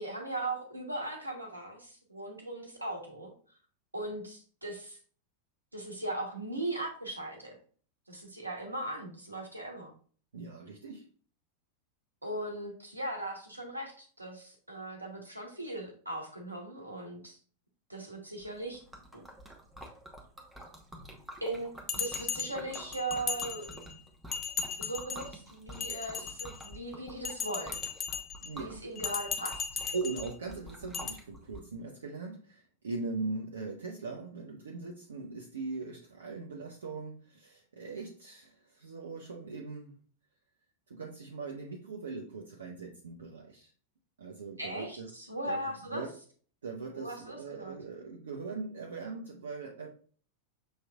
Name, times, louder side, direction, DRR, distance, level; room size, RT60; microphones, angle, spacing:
voice 1, 0.0-3.3 3.9-5.0 5.7-7.5 8.1-9.9 12.2-17.4 17.9-18.8 19.1-19.2 21.4-23.8 24.8-27.8 28.6-29.6 44.6-46.1 46.9-47.8, right 1 dB, 85° right, 2 dB, 1.0 m, -38 dB
voice 2, 10.3-11.0 28.4-28.7 29.9-39.9 40.9-43.7 44.2-45.1 45.5-46.1 46.6-49.9, right 4 dB, 65° right, 0 dB, 0.6 m, -40 dB
Liquid, 18.4-31.6, right 1 dB, 5° right, 0.9 m, -48 dB
Bell, 21.9-23.9 24.3-25.3 25.7-26.7 27.2-28.5 29.0-30.3 30.9-31.1, left 7 dB, 25° left, 0.6 m, -36 dB
6.3 x 3.0 x 2.3 m, 0.43 s
figure-of-eight pair, 90°, 0 cm